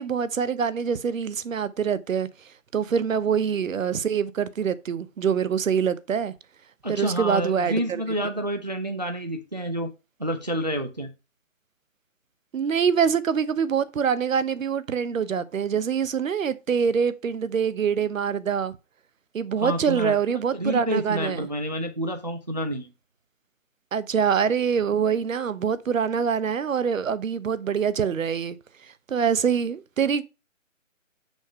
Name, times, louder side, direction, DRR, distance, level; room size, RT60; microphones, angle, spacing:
voice 1, 0.0-2.3 2.7-6.3 6.9-8.0 12.5-18.7 19.3-21.5 23.9-28.6 29.1-30.2, right 7 dB, 80° right, 0.9 m, -25 dB
voice 2, 6.8-9.9 10.2-11.1 19.6-22.9, equal, 35° right, 0.4 m, -29 dB
6.3 x 3.3 x 5.4 m
hypercardioid pair, 170°, 39 cm